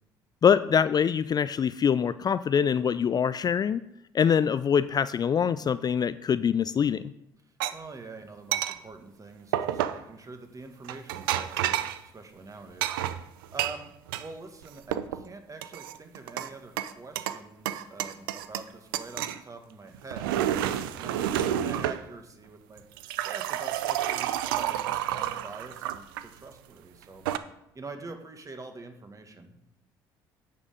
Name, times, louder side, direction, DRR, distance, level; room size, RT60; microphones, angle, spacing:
voice 1, 0.4-3.8 4.1-7.1, left 7 dB, 35° left, 14 dB, 0.4 m, -24 dB
voice 2, 7.4-13.0 13.2-13.9 14.2-22.8 23.2-27.2 27.7-29.6, right 3 dB, 30° right, 6 dB, 1.7 m, -45 dB
sound 1, 7.6-7.7 8.5-8.8 9.5-10.0 10.9-12.0 12.8-14.3 14.6-15.2 15.6-16.5 16.8-17.4 17.7-18.7 18.9-19.4 19.9-22.0 22.8-26.2 27.0-27.4, right 11 dB, 80° right, 0.4 m, -30 dB
9.8 x 5.5 x 5.1 m, 0.79 s
hypercardioid pair, 55°, 11 cm